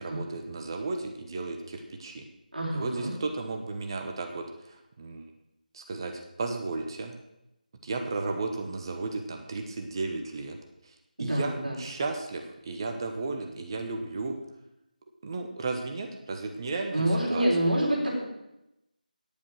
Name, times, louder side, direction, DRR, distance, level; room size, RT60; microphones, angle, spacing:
voice 1, 0.0-2.2 2.7-5.3 5.7-7.1 7.8-10.6 10.8-14.3 15.2-17.5, right 3 dB, 30° right, 4 dB, 1.0 m, -34 dB
voice 2, 2.5-3.1 11.2-11.8 16.9-18.2, right 1 dB, 65° right, -4 dB, 4.0 m, -27 dB
9.9 x 8.6 x 6.4 m, 0.87 s
figure-of-eight pair, 160°, 5 cm